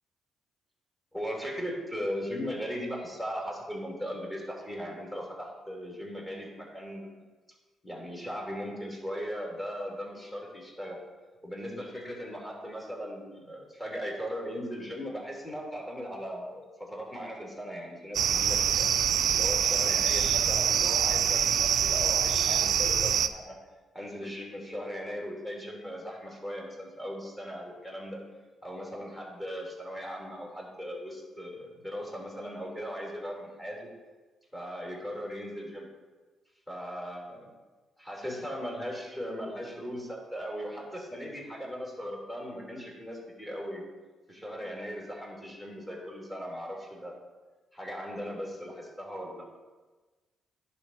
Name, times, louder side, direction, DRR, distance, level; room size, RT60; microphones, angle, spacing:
voice 1, 1.1-7.1 7.8-11.0 11.4-18.9 19.3-23.6 23.9-28.2 28.6-33.9 34.5-35.9 36.7-37.4 38.0-43.8 44.3-47.2 47.7-49.5, equal, 10° left, -2 dB, 2.9 m, -38 dB
sound 1, 18.1-23.3, right 8 dB, 65° right, 0.5 m, -25 dB
10.5 x 4.0 x 6.3 m, 1.3 s
cardioid pair, 90°, 0 cm